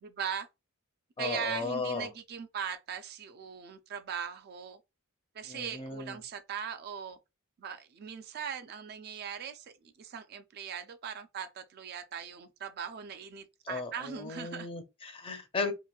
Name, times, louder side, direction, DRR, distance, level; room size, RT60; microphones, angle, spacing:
voice 1, 0.0-0.5 1.2-4.8 5.3-7.2 7.6-14.7, right 7 dB, 50° right, 0.3 m, -39 dB
voice 2, 1.2-2.1 5.5-6.2 13.7-15.7, left 3 dB, 25° left, 0.5 m, -36 dB
3.0 x 2.5 x 2.2 m
head